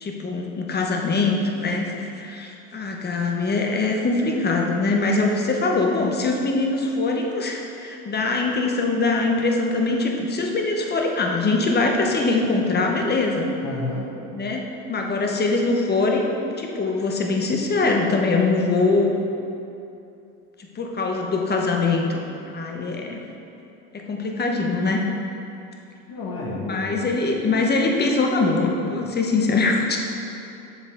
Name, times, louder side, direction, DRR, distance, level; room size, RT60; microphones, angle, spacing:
voice 1, 0.0-13.5 14.3-16.2 16.6-19.1 20.7-22.2 22.5-23.2 23.9-25.0 26.6-30.0, left 3 dB, 25° left, 1 dB, 1.1 m, -23 dB
voice 2, 13.6-14.1 26.1-27.0, left 2 dB, 45° left, -7 dB, 1.6 m, -30 dB
7.0 x 6.8 x 3.8 m, 2.7 s
supercardioid pair, 85°, 39 cm